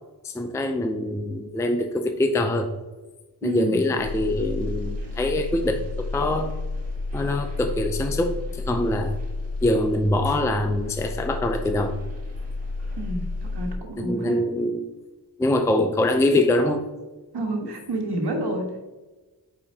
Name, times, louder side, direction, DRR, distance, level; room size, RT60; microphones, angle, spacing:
voice 1, 0.2-2.7 3.4-6.5 7.1-9.2 9.6-11.9 14.0-14.8 15.4-16.9, left 1 dB, 10° left, 5 dB, 0.4 m, -24 dB
voice 2, 3.4-3.8 13.0-14.4 17.3-18.8, right 2 dB, 75° right, 1 dB, 1.4 m, -29 dB
sound 1, 4.0-13.8, left 3 dB, 35° right, 1.9 m, -31 dB
8.6 x 4.7 x 2.8 m, 1.2 s
wide cardioid pair, 135°, 40 cm